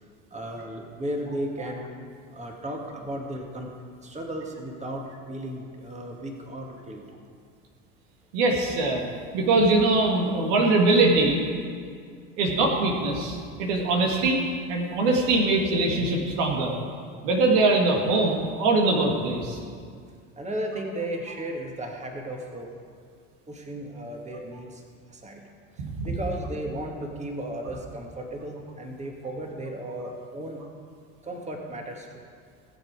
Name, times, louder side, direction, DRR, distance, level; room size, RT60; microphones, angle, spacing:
voice 1, 0.3-1.9 2.3-3.7 4.0-7.0 20.4-22.7 23.5-24.8 25.1-25.5 25.8-30.6 31.2-32.2, right 1 dB, 15° right, 1 dB, 2.0 m, -35 dB
voice 2, 8.3-9.0 9.3-11.4 12.4-14.4 14.7-16.7 17.2-19.6 25.8-26.1, right 2 dB, 65° right, 1 dB, 2.1 m, -22 dB
17.5 x 7.6 x 4.9 m, 2.1 s
hypercardioid pair, 75°, 39 cm